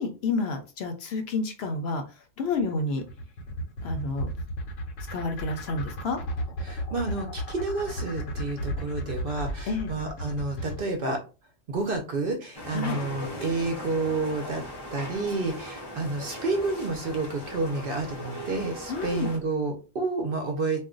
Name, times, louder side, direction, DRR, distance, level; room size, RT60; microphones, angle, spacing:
voice 1, 0.0-2.0 2.4-3.0 3.8-4.3 5.1-6.2 9.7-9.9 12.7-13.0 18.9-19.4, left 3 dB, 65° left, 6 dB, 0.7 m, -29 dB
sound 1, 2.6-10.8, left 1 dB, 85° left, 1.0 m, -34 dB
voice 2, 6.6-11.2 11.7-14.6 14.9-20.9, right 3 dB, 55° right, 4 dB, 0.7 m, -30 dB
sound 2, 12.5-19.4, left 1 dB, 25° left, 0.6 m, -39 dB
2.4 x 2.2 x 3.7 m, 0.33 s
omnidirectional pair, 1.3 m